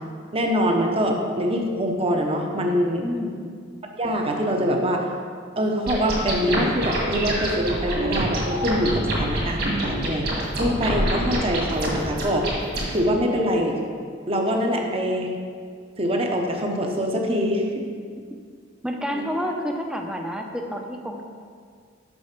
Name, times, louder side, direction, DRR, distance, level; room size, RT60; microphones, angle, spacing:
voice 1, 0.3-3.1 3.9-5.1 5.6-12.5 12.9-13.8 14.3-15.3 16.0-17.7 19.1-19.2, equal, 30° right, 2 dB, 0.8 m, -24 dB
voice 2, 3.0-3.5 18.8-21.2, equal, 5° right, 2 dB, 0.6 m, -29 dB
sound 1, 5.9-12.9, right 1 dB, 55° right, 1.9 m, -26 dB
6.2 x 5.5 x 5.9 m, 2.1 s
head